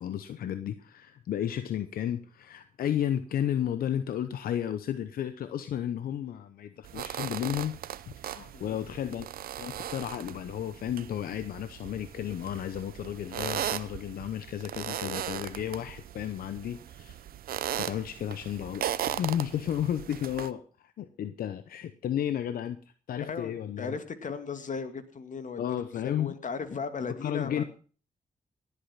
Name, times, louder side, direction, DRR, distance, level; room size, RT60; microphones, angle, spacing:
voice 1, 0.0-7.8 8.2-9.3 9.6-17.2 17.8-18.9 19.1-22.8 23.1-23.9 25.6-26.4 27.2-27.6, left 10 dB, 85° left, 11 dB, 0.9 m, -33 dB
sound 1, 6.8-20.5, right 11 dB, 85° right, 0.8 m, -38 dB
voice 2, 23.2-25.6 26.2-27.6, left 5 dB, 60° left, 10 dB, 2.3 m, -36 dB
18.5 x 8.6 x 5.7 m, 0.39 s
cardioid pair, 65°, 15 cm